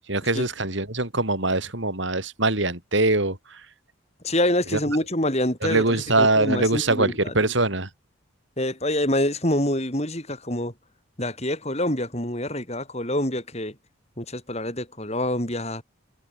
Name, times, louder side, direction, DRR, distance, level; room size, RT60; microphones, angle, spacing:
voice 1, 0.1-3.6 4.7-4.8 5.6-7.9, right 2 dB, 65° right, 4.8 m, -23 dB
voice 2, 4.2-5.8 6.2-7.4 8.6-10.7 11.2-13.7 14.2-15.8, left 1 dB, 30° left, 7.9 m, -26 dB
head